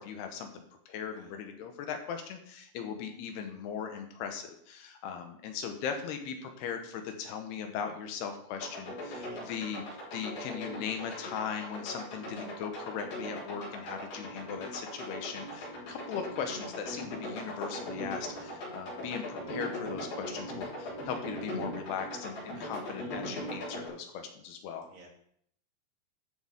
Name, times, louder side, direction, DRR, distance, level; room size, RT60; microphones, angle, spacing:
voice 1, 0.0-24.9, left 7 dB, 85° left, 5 dB, 3.2 m, -39 dB
sound 1, 8.6-23.9, equal, 65° left, 5.7 m, -40 dB
voice 2, 9.2-9.5 15.5-15.8 18.2-18.6 22.5-23.3 24.9-25.1, right 2 dB, 90° right, -3 dB, 4.9 m, -55 dB
13.0 x 6.4 x 3.7 m, 0.67 s
omnidirectional pair, 4.5 m